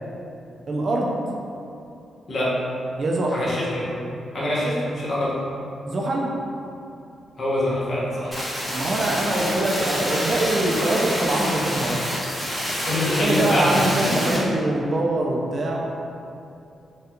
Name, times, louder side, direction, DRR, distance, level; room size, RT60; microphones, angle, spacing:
voice 1, 0.7-1.2 3.0-3.4 5.9-6.3 8.7-12.0 13.2-15.9, right 1 dB, 40° right, -2 dB, 0.3 m, -23 dB
voice 2, 3.3-4.0 4.3-5.3 7.4-8.3 12.8-13.8 14.4-14.5, left 1 dB, 40° left, -7 dB, 0.8 m, -24 dB
sound 1, 8.3-14.4, equal, 5° left, 0.7 m, -27 dB
3.2 x 2.3 x 2.9 m, 2.6 s
wide cardioid pair, 155°, 0 cm